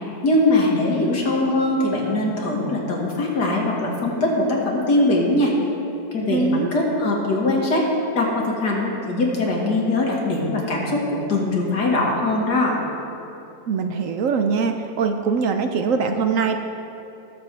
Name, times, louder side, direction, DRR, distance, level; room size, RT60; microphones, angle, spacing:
voice 1, 0.2-5.5 6.1-7.9 8.2-12.8, left 2 dB, 85° left, -2 dB, 2.3 m, -21 dB
voice 2, 6.3-6.7 13.7-16.6, right 5 dB, 65° right, 6 dB, 0.9 m, -22 dB
20.0 x 7.0 x 3.4 m, 2.9 s
omnidirectional pair, 1.7 m